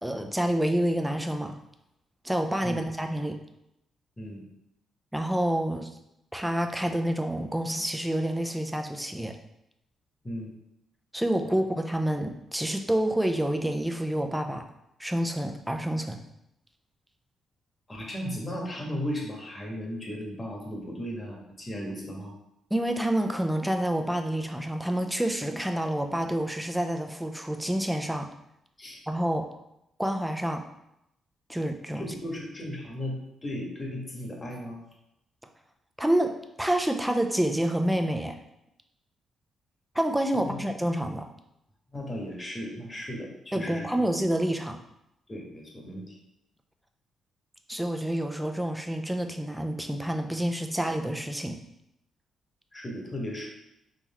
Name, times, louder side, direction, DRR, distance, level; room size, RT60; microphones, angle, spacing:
voice 1, 0.0-1.6 2.2-3.4 5.1-5.9 6.3-9.4 11.1-14.6 15.0-16.2 22.7-28.3 29.1-29.5 30.0-30.6 31.5-32.1 36.0-36.3 36.6-38.4 39.9-41.3 43.5-44.8 47.7-51.6, right 1 dB, 5° right, 4 dB, 0.5 m, -28 dB
voice 2, 17.9-22.3 28.8-29.0 31.9-34.8 40.4-40.6 41.9-44.1 45.3-46.2 52.7-53.5, equal, 25° left, -1 dB, 1.4 m, -36 dB
3.9 x 2.9 x 4.2 m, 0.83 s
cardioid pair, 80°, 0 cm